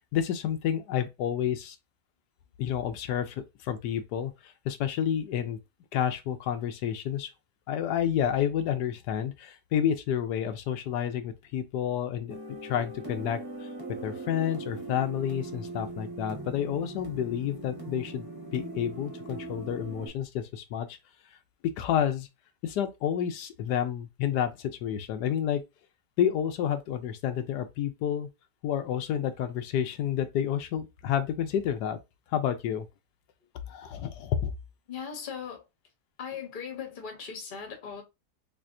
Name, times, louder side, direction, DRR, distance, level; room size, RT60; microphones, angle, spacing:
voice 1, 0.0-1.8 2.6-5.6 5.9-7.3 7.7-13.7 14.0-18.3 18.5-21.0 21.8-22.3 22.6-25.6 26.2-28.3 28.6-32.0 32.3-32.9 33.7-34.5, left 9 dB, 85° left, 1.2 m, -30 dB
sound 1, 12.3-20.1, right 2 dB, 15° right, 1.1 m, -40 dB
voice 2, 34.9-35.6 36.2-38.0, left 7 dB, 40° left, 0.9 m, -38 dB
3.5 x 3.3 x 2.5 m
omnidirectional pair, 1.7 m